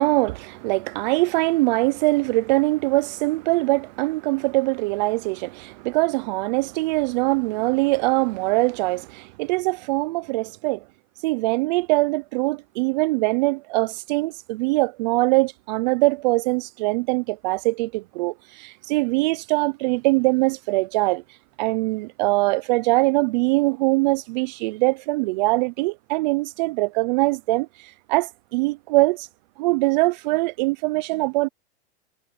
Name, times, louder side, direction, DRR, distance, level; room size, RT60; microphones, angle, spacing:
voice 1, 0.0-10.8 11.2-21.2 21.6-27.7 28.1-29.3 29.6-31.5, right 23 dB, 45° right, 0.5 m, -22 dB
supercardioid pair, 150°, 33 cm